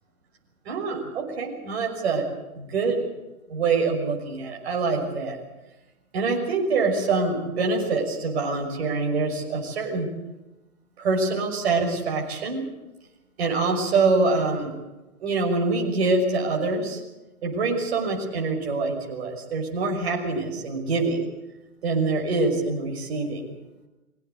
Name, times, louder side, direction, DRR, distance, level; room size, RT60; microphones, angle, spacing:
voice 1, 0.7-2.2 2.6-3.0 3.5-5.4 6.1-10.1 11.0-12.6 13.4-14.7 15.2-17.0 17.4-21.2 21.8-23.4, right 3 dB, 45° right, 0 dB, 6.0 m, -25 dB
23.5 x 17.0 x 8.2 m, 1.0 s
hypercardioid pair, 165°, 44 cm